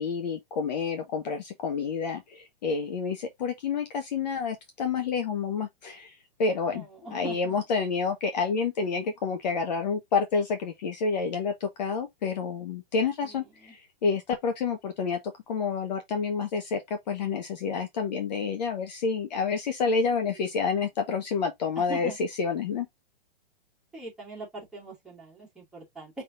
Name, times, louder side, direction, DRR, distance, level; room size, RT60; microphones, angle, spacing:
voice 1, 0.0-6.8 7.1-15.2 15.5-22.1 22.4-22.9, left 5 dB, 45° left, 0.9 m, -29 dB
voice 2, 6.7-7.6 13.2-13.8 20.1-20.4 21.8-22.2 23.9-26.2, right 2 dB, ahead, 2.4 m, -42 dB
5.3 x 3.5 x 2.6 m
hypercardioid pair, 165°, 31 cm